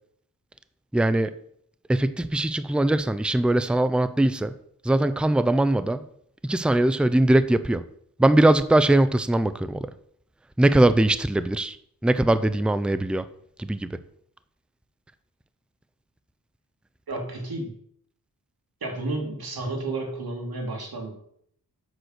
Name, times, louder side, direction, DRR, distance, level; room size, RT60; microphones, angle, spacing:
voice 1, 0.9-1.4 1.9-4.5 4.8-6.0 6.4-7.9 8.2-9.9 10.6-11.8 12.0-13.3 13.6-14.0, right 1 dB, 5° right, 13 dB, 0.5 m, -21 dB
voice 2, 17.1-17.7 18.8-21.2, right 2 dB, 75° right, 1 dB, 2.7 m, -31 dB
7.9 x 6.0 x 6.4 m, 0.66 s
wide cardioid pair, 85°, 37 cm